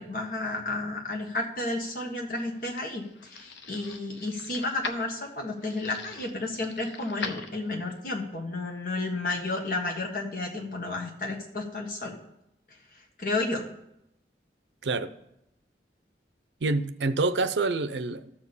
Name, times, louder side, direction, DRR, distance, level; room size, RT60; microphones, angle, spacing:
voice 1, 0.0-12.1 13.2-13.6, left 2 dB, 50° left, 1.7 m, -32 dB
sound 1, 2.1-8.0, left 4 dB, 85° left, 0.8 m, -42 dB
voice 2, 16.6-18.3, right 3 dB, 85° right, 0.6 m, -27 dB
13.0 x 4.4 x 7.1 m
head